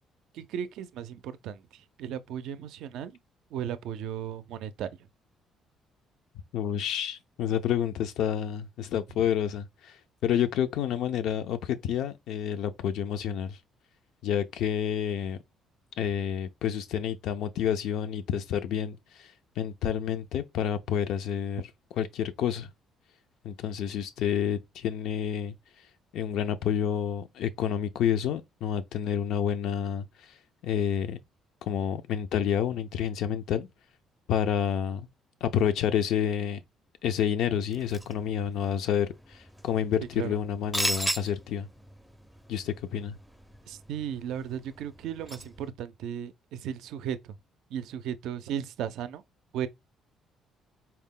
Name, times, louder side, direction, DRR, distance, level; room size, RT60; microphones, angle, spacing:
voice 1, 0.3-1.6 2.0-3.2 3.5-4.9 40.2-40.4 43.7-47.3 47.7-49.2 49.5-49.7, right 9 dB, 80° right, 0.4 m, -35 dB
voice 2, 6.5-13.6 14.2-15.4 16.0-21.7 22.0-22.7 23.4-25.5 26.1-30.4 30.6-31.2 31.6-33.7 34.3-35.1 35.4-36.6 37.0-41.7 42.5-43.1, left 9 dB, 75° left, 0.4 m, -29 dB
sound 1, 37.7-45.7, equal, ahead, 0.4 m, -38 dB
4.2 x 2.1 x 3.6 m
cardioid pair, 130°, 0 cm